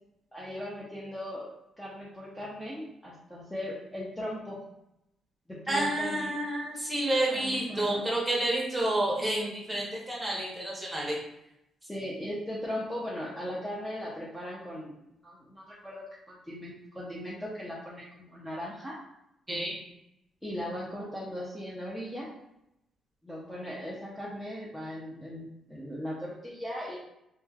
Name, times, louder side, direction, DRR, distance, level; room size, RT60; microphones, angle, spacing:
voice 1, 0.3-1.5 1.8-4.6 5.5-6.3 7.3-8.0 11.9-14.9 15.2-19.0 20.4-22.3 23.2-27.0, left 1 dB, 5° left, -6 dB, 0.5 m, -38 dB
voice 2, 5.7-11.2 19.5-19.8, right 1 dB, 10° right, -4 dB, 0.9 m, -29 dB
2.9 x 2.2 x 2.3 m, 0.84 s
cardioid pair, 90°, 0 cm